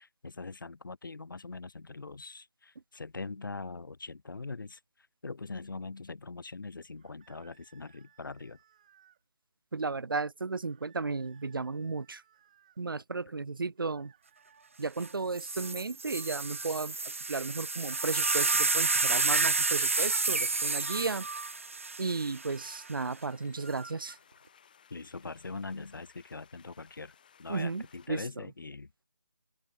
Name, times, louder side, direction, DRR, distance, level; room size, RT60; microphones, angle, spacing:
voice 1, 0.0-4.8 5.2-8.6 24.9-28.9, left 3 dB, 70° left, 1.0 m, -42 dB
sound 1, 7.0-9.2 10.6-12.8 13.8-15.8, right 10 dB, 20° right, 5.4 m, -65 dB
voice 2, 9.7-12.2 12.8-14.1 14.8-17.0 17.3-21.3 22.0-24.2 27.5-28.3, right 4 dB, 75° right, 0.7 m, -34 dB
sound 2, 15.0-15.1 15.4-22.8 23.7-24.1, right 4 dB, 35° right, 0.3 m, -30 dB
sound 3, 16.0-28.1, left 8 dB, 25° left, 3.7 m, -61 dB
open air
figure-of-eight pair, 170°, 12 cm